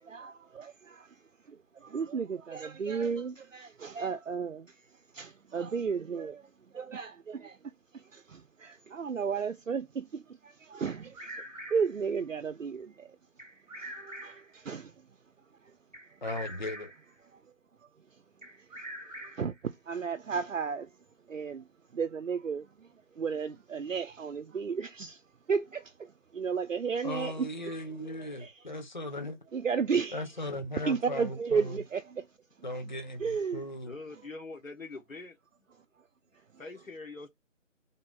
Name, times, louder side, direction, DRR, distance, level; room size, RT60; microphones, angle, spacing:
voice 1, 0.0-1.1 1.5-4.8 5.1-6.5 6.7-7.6 7.9-11.4 11.7-13.2 13.8-14.9 19.4-20.9 21.3-21.6 21.9-22.9 23.2-25.2 25.5-27.7 28.0-28.6 29.5-30.2 30.8-32.3 33.2-33.6, right 6 dB, 70° right, 0.7 m, -34 dB
Bird vocalization bird call bird song, 10.8-12.0 13.4-14.6 15.9-17.1 18.4-19.6, right 1 dB, 30° right, 1.4 m, -44 dB
voice 2, 16.2-16.9 27.0-29.4 30.1-31.8 32.6-33.9, left 1 dB, 35° left, 0.7 m, -37 dB
voice 3, 33.8-35.3 36.6-37.3, left 3 dB, 90° left, 1.5 m, -43 dB
3.6 x 2.7 x 3.8 m
figure-of-eight pair, 165°, 39 cm